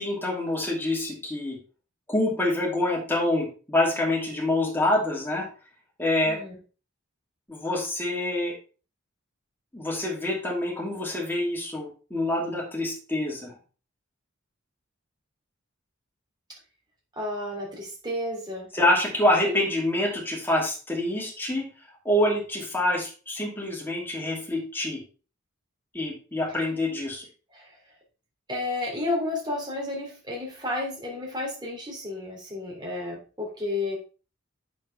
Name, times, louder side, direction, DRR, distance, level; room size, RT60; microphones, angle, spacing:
voice 1, 0.0-1.6 2.1-5.4 6.0-6.4 7.5-8.5 9.7-13.5 18.7-21.7 22.0-25.0 25.9-27.2, left 1 dB, 10° left, -3 dB, 3.0 m, -26 dB
voice 2, 17.2-18.7 19.4-19.6 27.5-27.7 28.5-34.0, left 2 dB, 20° right, -2 dB, 3.2 m, -32 dB
8.4 x 7.2 x 3.5 m, 0.35 s
head